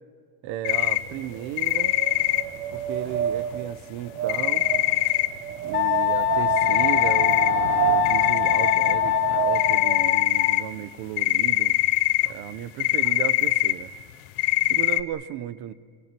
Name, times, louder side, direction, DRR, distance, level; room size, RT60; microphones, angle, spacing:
voice 1, 0.4-1.9 2.7-4.7 5.6-11.8 12.3-13.9 14.7-15.7, right 13 dB, 35° right, 18 dB, 0.8 m, -34 dB
sound 1, 0.6-1.0 1.6-2.4 4.3-5.3 6.6-7.5 7.7-7.8 8.0-8.9 9.5-10.6 11.2-12.3 12.8-13.7 14.4-15.0, left 19 dB, 45° left, 1.0 m, -22 dB
Wind, 1.1-10.3, right 11 dB, 85° right, 1.3 m, -29 dB
Wind instrument woodwind instrument, 5.7-10.7, left 18 dB, 25° left, 0.7 m, -24 dB
25.5 x 22.5 x 7.6 m, 2.2 s
supercardioid pair, 165°, 47 cm